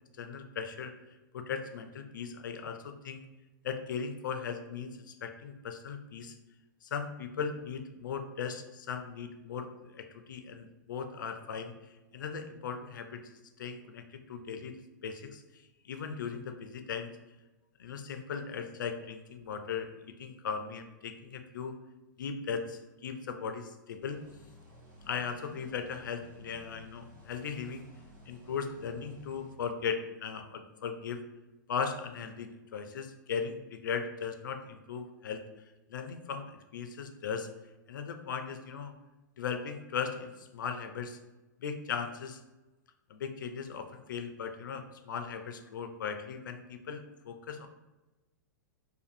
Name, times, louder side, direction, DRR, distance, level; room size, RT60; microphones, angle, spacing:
voice 1, 0.2-0.9 1.3-3.2 3.6-6.4 6.8-11.7 12.1-14.8 15.0-15.4 15.8-17.1 17.8-21.7 22.2-24.2 25.1-27.9 28.3-31.2 31.7-35.4 35.9-37.5 37.9-38.9 39.4-41.2 41.6-42.4 43.1-47.7, left 6 dB, 75° left, 7 dB, 0.4 m, -38 dB
sound 1, 24.0-29.5, left 1 dB, 90° right, 1.1 m, -54 dB
2.5 x 2.4 x 2.5 m, 1.1 s
hypercardioid pair, 115°, 11 cm